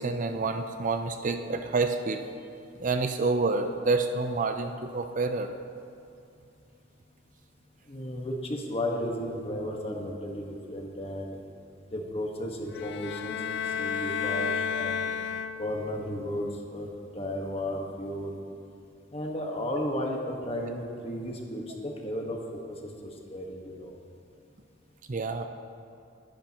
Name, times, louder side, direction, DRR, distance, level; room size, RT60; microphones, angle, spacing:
voice 1, 0.0-2.2 2.8-5.5 25.1-25.5, right 3 dB, 45° right, 7 dB, 0.5 m, -28 dB
voice 2, 7.9-11.4 11.9-15.1 15.6-18.4 19.1-22.4 22.8-23.9, left 1 dB, 30° left, 0 dB, 1.5 m, -34 dB
sound 1, 12.7-16.0, left 7 dB, 65° left, 0.4 m, -32 dB
20.0 x 10.5 x 3.0 m, 2.5 s
head